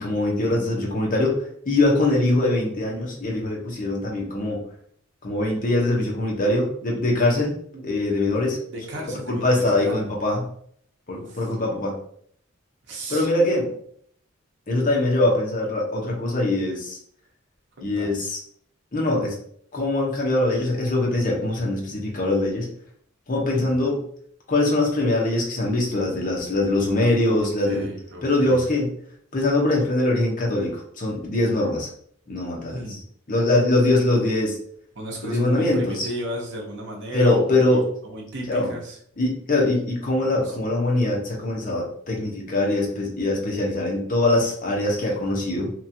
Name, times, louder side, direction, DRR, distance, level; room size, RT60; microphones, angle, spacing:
voice 1, 0.0-1.3 1.6-4.6 5.2-7.6 7.8-8.6 9.3-10.4 11.1-12.0 13.1-13.7 14.7-17.0 17.8-18.4 18.9-19.4 19.7-22.7 23.3-24.0 24.5-27.8 28.2-28.9 29.3-31.9 32.3-33.0 33.3-34.6 35.2-36.1 37.1-37.8 38.5-38.7 39.2-45.7, left 2 dB, 40° left, -2 dB, 0.8 m, -22 dB
voice 2, 8.7-10.0 11.1-11.5 12.9-13.3 15.2-15.3 17.8-18.2 23.6-23.7 27.3-28.6 32.7-33.0 34.9-39.0 40.4-40.7, right 1 dB, 60° right, -1 dB, 0.8 m, -34 dB
2.9 x 2.4 x 2.7 m, 0.63 s
head